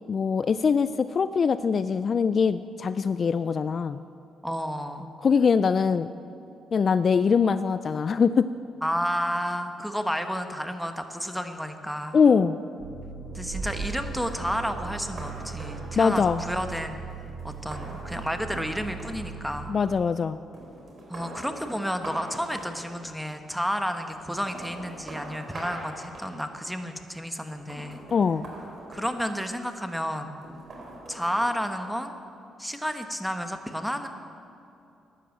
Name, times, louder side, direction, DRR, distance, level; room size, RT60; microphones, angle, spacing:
voice 1, 0.1-4.0 5.2-6.1 6.7-8.5 12.1-12.6 16.0-16.4 19.7-20.4 28.1-28.5, left 6 dB, 45° left, 13 dB, 0.3 m, -22 dB
voice 2, 4.4-5.1 8.8-12.2 13.3-17.0 17.4-19.7 21.1-28.0 28.9-30.3 31.1-32.1 32.6-34.1, equal, ahead, 7 dB, 1.1 m, -31 dB
sound 1, 12.8-20.2, right 6 dB, 80° right, 1.3 m, -39 dB
sound 2, 13.5-20.2 20.5-23.3 24.1-26.8 27.5-29.7 30.4-31.5, right 2 dB, 45° right, 3.5 m, -42 dB
12.5 x 10.0 x 7.8 m, 2.7 s
cardioid pair, 90°, 0 cm